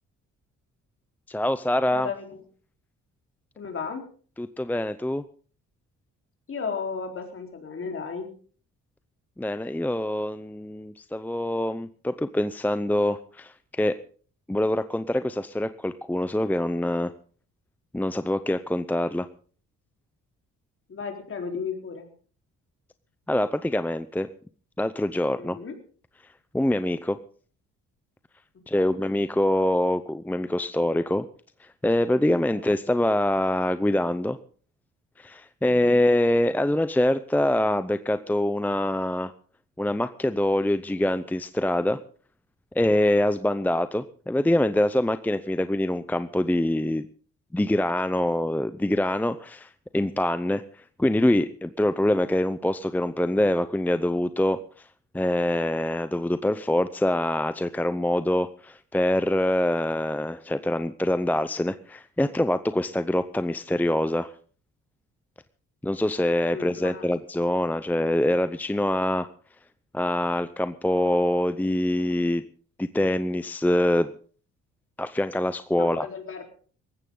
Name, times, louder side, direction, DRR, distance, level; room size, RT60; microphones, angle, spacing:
voice 1, 1.3-2.1 4.4-5.2 9.4-14.0 14.5-17.1 17.9-19.3 23.3-24.3 24.8-25.6 26.5-27.2 28.7-31.2 31.6-34.4 35.2-39.3 39.8-42.0 42.7-47.1 47.5-54.6 55.1-64.3 65.8-69.3 69.9-72.4 72.8-74.1 75.0-76.1, left 1 dB, 5° left, 12 dB, 0.7 m, -24 dB
voice 2, 1.9-2.4 3.6-4.0 6.5-8.3 20.9-22.1 25.4-25.7 28.7-29.0 32.5-32.6 66.5-67.1 75.8-76.4, left 5 dB, 45° left, 3 dB, 4.1 m, -34 dB
18.5 x 15.0 x 3.9 m, 0.42 s
cardioid pair, 90°, 30 cm